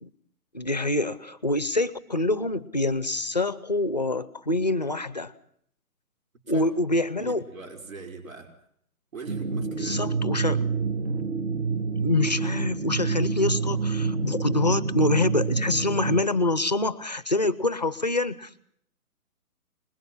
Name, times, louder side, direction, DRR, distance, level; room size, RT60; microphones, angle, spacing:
voice 1, 0.5-5.3 6.5-7.4 9.8-10.6 11.9-18.6, left 2 dB, 30° left, 16 dB, 0.7 m, -26 dB
voice 2, 7.0-8.6 9.1-10.0, right 4 dB, 65° right, 5 dB, 5.4 m, -41 dB
sound 1, 9.3-16.2, right 5 dB, 45° right, 2.4 m, -27 dB
24.5 x 21.5 x 5.6 m, 0.68 s
hypercardioid pair, 180°, 45 cm